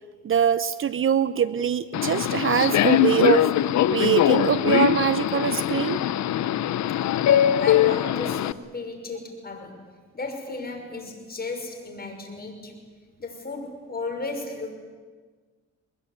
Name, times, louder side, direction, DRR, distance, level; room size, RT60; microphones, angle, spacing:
voice 1, 0.2-3.5 3.9-6.0, right 8 dB, 45° right, 15 dB, 0.8 m, -23 dB
Subway metro underground, 1.9-8.5, left 11 dB, 65° left, 0.9 m, -22 dB
voice 2, 7.3-9.9 10.1-12.8 13.2-14.7, left 3 dB, 30° left, 4 dB, 6.2 m, -34 dB
22.0 x 21.5 x 9.7 m, 1.5 s
cardioid pair, 90°, 30 cm